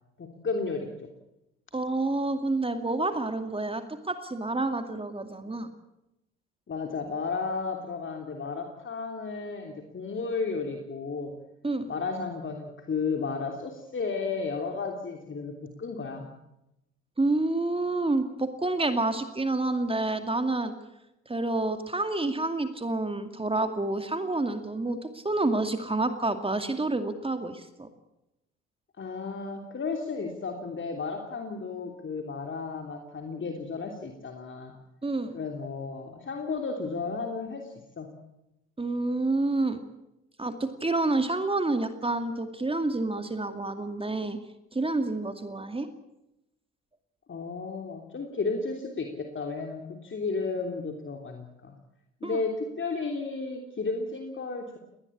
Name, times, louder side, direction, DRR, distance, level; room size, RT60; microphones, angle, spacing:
voice 1, 0.2-1.1 6.7-11.3 11.9-16.3 29.0-34.7 35.3-38.1 47.3-51.7 52.2-54.8, left 4 dB, 35° left, 3 dB, 3.2 m, -33 dB
voice 2, 1.7-5.7 11.6-11.9 17.2-20.7 21.3-27.9 35.0-35.3 38.8-39.8 40.4-44.4 44.7-45.9 52.2-52.4, right 2 dB, 15° right, 8 dB, 2.3 m, -28 dB
20.0 x 19.5 x 8.6 m, 0.90 s
hypercardioid pair, 60°, 32 cm